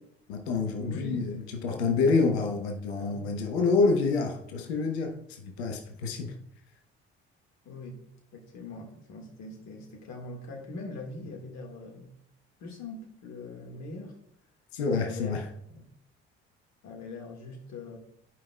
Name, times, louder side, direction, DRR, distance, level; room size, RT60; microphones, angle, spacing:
voice 1, 0.3-6.3 14.7-15.5, left 4 dB, 80° left, 1.0 m, -27 dB
voice 2, 0.8-2.0 3.0-3.4 5.9-6.0 7.6-8.0 8.3-12.2 12.6-14.2 14.9-15.4 15.7-15.8 16.8-18.0, left 2 dB, 60° left, 1.8 m, -42 dB
14.0 x 5.4 x 2.3 m
hypercardioid pair, 50°, 32 cm